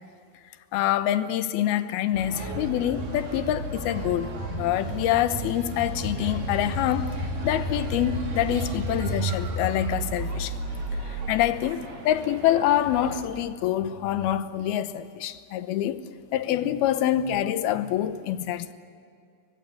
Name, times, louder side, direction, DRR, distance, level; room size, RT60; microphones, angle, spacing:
voice 1, 0.7-7.1 7.4-10.5 11.3-16.0 16.3-18.7, left 12 dB, 80° left, 2.9 m, -26 dB
sound 1, 2.1-13.2, right 1 dB, 60° right, 5.1 m, -32 dB
29.0 x 24.5 x 8.6 m
omnidirectional pair, 4.4 m